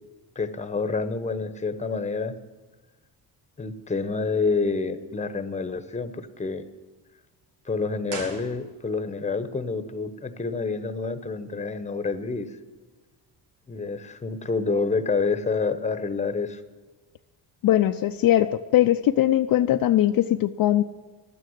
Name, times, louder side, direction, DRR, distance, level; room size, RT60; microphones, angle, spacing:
voice 1, 0.4-2.3 3.6-6.6 7.7-12.5 13.7-16.6, left 4 dB, 15° left, 11 dB, 1.0 m, -28 dB
sound 1, 8.1-9.2 9.4-9.5, right 4 dB, 90° right, 2.0 m, -39 dB
voice 2, 17.6-20.8, left 12 dB, 55° left, 7 dB, 0.6 m, -20 dB
12.0 x 9.3 x 9.6 m, 1.3 s
cardioid pair, 105°, 43 cm